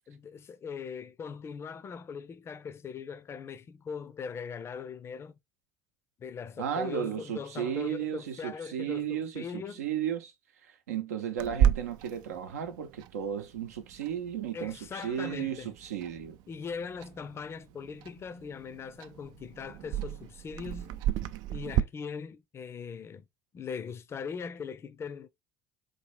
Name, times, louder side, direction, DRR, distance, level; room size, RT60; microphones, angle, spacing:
voice 1, 0.1-5.3 6.2-9.8 14.5-15.7 16.5-21.0 21.5-23.2 23.5-25.3, left 6 dB, 30° left, 0.5 m, -40 dB
voice 2, 6.6-10.3 10.6-16.4, right 9 dB, 75° right, 0.7 m, -34 dB
Clock, 11.4-21.8, right 10 dB, 55° right, 0.3 m, -34 dB
4.1 x 2.7 x 3.2 m
figure-of-eight pair, 65°, 8 cm